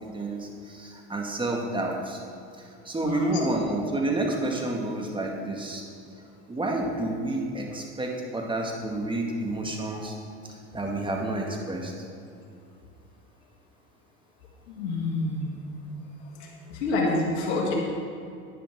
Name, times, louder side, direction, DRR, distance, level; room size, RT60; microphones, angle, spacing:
voice 1, 0.0-2.2 2.9-5.8 6.5-10.1 10.7-11.9, right 2 dB, 15° right, 0 dB, 1.9 m, -29 dB
voice 2, 3.0-3.4 14.7-15.7 16.7-17.7, left 2 dB, 80° left, -2 dB, 1.9 m, -28 dB
10.5 x 9.5 x 3.7 m, 2.5 s
hypercardioid pair, 80°, 34 cm